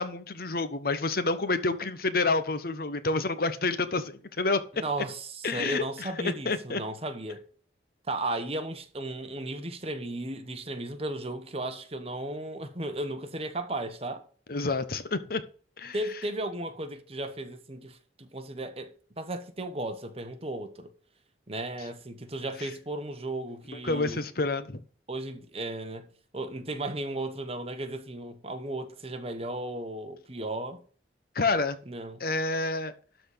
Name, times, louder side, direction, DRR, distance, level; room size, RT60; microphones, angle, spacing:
voice 1, 0.0-4.6 5.4-6.8 14.5-15.4 15.8-16.0 23.8-24.8 31.3-31.8 32.2-32.9, left 3 dB, 55° left, 1.0 m, -28 dB
voice 2, 4.7-7.4 8.1-14.2 15.9-20.9 21.5-24.2 25.1-30.8 31.9-32.2, right 1 dB, 35° right, 1.3 m, -35 dB
12.5 x 4.3 x 6.8 m
head